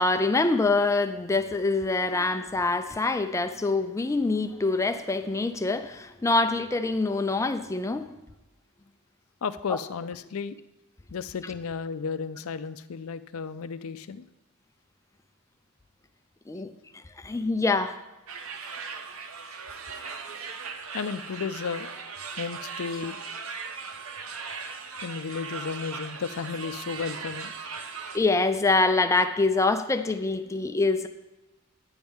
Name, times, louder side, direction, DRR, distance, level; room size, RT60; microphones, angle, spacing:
voice 1, 0.0-8.1 9.7-9.8 16.5-16.7 17.2-18.0 28.1-31.1, left 3 dB, 15° left, 9 dB, 0.4 m, -25 dB
voice 2, 9.4-10.6 11.1-14.2 20.9-21.9 22.4-23.2 25.0-27.5, left 5 dB, 85° left, 12 dB, 0.5 m, -33 dB
sound 1, 18.3-28.2, right 5 dB, 85° right, 0.8 m, -38 dB
10.5 x 9.7 x 3.6 m, 1.0 s
head